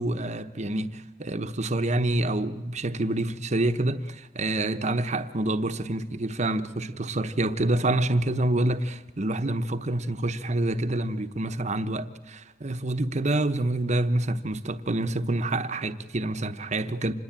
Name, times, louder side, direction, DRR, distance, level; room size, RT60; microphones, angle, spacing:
voice 1, 0.0-17.1, right 2 dB, 40° right, 1.1 m, -27 dB
26.5 x 21.0 x 9.0 m
head